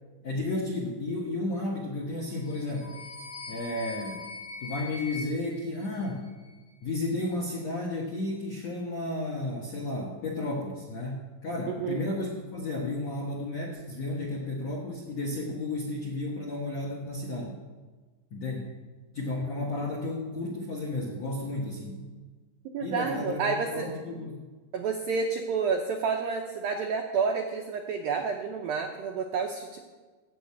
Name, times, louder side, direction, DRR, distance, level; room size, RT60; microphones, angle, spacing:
voice 1, 0.2-2.9 3.5-4.2 4.6-6.3 6.8-17.6 18.3-18.7 19.1-22.0 22.8-24.4, left 2 dB, 70° left, -2 dB, 1.5 m, -33 dB
sound 1, 2.3-6.6, left 3 dB, 90° left, 1.4 m, -42 dB
voice 2, 11.7-12.0 22.7-23.9 24.7-29.8, right 5 dB, 85° right, 2 dB, 2.1 m, -29 dB
14.5 x 6.2 x 8.6 m, 1.3 s
omnidirectional pair, 5.3 m